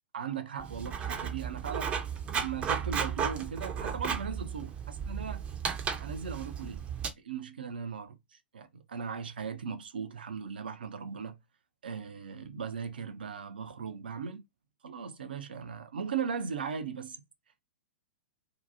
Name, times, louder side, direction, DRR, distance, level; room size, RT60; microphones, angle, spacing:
voice 1, 0.1-2.1 2.3-5.4 6.0-6.9 7.2-11.4 11.8-14.4 14.8-17.2, right 6 dB, 65° right, 0.6 m, -38 dB
Writing, 0.6-7.1, right 7 dB, 20° right, 0.6 m, -34 dB
2.7 x 2.2 x 2.6 m
figure-of-eight pair, 105°, 6 cm